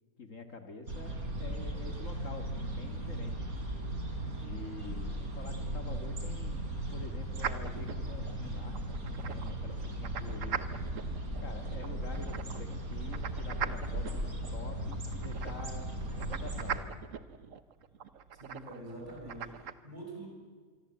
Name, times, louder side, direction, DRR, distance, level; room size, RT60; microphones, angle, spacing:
voice 1, 0.2-1.1 1.4-3.3 4.4-8.8 9.3-10.8 11.4-14.2 14.5-17.0, left 3 dB, 60° left, 6 dB, 2.4 m, -47 dB
sound 1, 0.9-16.8, right 1 dB, 80° right, 4.1 m, -37 dB
sound 2, 7.4-19.7, right 8 dB, 65° right, 1.4 m, -42 dB
voice 2, 18.4-20.3, right 2 dB, 30° right, -1 dB, 8.4 m, -45 dB
26.5 x 23.5 x 8.1 m, 1.5 s
omnidirectional pair, 1.5 m